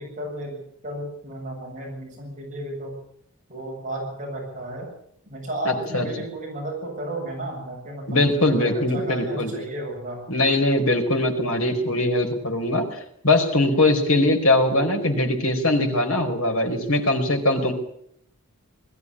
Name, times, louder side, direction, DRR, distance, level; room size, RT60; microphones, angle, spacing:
voice 1, 0.0-3.0 3.5-4.9 5.3-10.2 11.4-11.7, right 1 dB, 35° right, -1 dB, 7.5 m, -33 dB
voice 2, 5.6-6.1 8.1-9.5 10.3-12.9 13.2-17.7, left 2 dB, 80° left, 3 dB, 4.7 m, -21 dB
21.0 x 14.0 x 9.8 m, 0.71 s
head